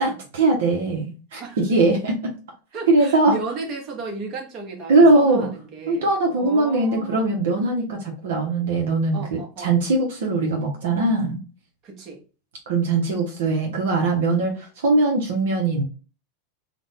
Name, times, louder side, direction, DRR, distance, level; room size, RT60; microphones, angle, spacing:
voice 1, 0.0-2.3 2.9-3.4 4.9-5.5 5.9-11.4 12.7-15.8, right 2 dB, 75° right, 0.7 m, -20 dB
voice 2, 2.7-7.4 9.1-9.7 11.8-12.2 13.4-13.5, right 4 dB, 40° right, 0.9 m, -34 dB
2.5 x 2.1 x 3.2 m
hypercardioid pair, 105°, 0 cm